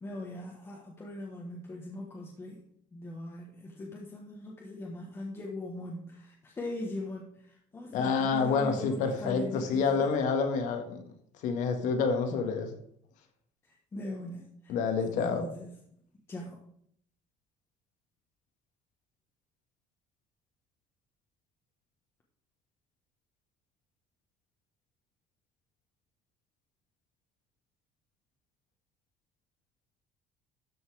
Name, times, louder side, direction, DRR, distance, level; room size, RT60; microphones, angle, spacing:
voice 1, 0.0-2.6 2.9-10.1 13.6-14.8 15.1-15.7 16.3-16.6, left 2 dB, 15° left, -2 dB, 1.3 m, -41 dB
voice 2, 7.9-11.0 11.4-12.8 14.7-15.5, left 5 dB, 60° left, 6 dB, 1.7 m, -28 dB
13.0 x 5.4 x 4.9 m, 0.67 s
cardioid pair, 170°, 14 cm